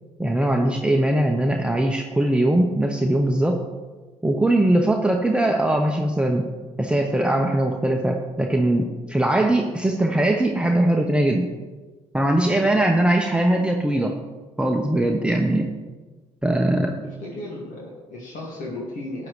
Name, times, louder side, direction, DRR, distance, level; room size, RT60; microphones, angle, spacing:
voice 1, 0.2-3.6 4.2-6.5 6.8-11.5 12.1-14.2 14.6-15.7 16.4-17.0, right 1 dB, 5° right, 1 dB, 0.9 m, -21 dB
voice 2, 17.0-19.3, left 2 dB, 60° left, -3 dB, 2.1 m, -35 dB
12.5 x 8.6 x 3.2 m, 1.3 s
hypercardioid pair, 55°, 15 cm